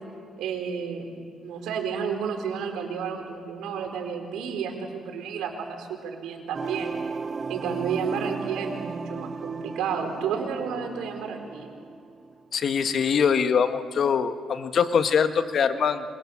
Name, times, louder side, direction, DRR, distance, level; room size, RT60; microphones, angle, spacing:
voice 1, 0.4-1.1 1.4-6.9 7.5-11.7, right 6 dB, 85° right, 3 dB, 4.9 m, -31 dB
sound 1, 6.5-12.4, right 5 dB, 35° right, 0.7 m, -36 dB
voice 2, 12.5-16.0, left 6 dB, 60° left, 8 dB, 1.6 m, -23 dB
28.5 x 25.5 x 7.5 m, 2.4 s
cardioid pair, 90°, 0 cm